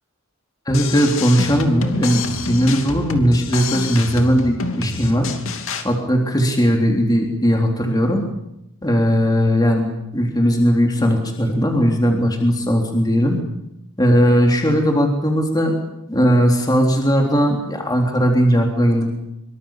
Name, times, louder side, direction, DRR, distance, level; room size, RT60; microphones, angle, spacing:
sound 1, 0.7-5.8, left 4 dB, 65° left, 2.8 m, -28 dB
voice 1, 0.7-5.3 5.8-8.2 8.8-9.9 10.1-13.4 14.0-15.7 16.1-19.1, equal, 20° left, 1 dB, 3.5 m, -18 dB
25.5 x 25.0 x 7.4 m, 0.83 s
head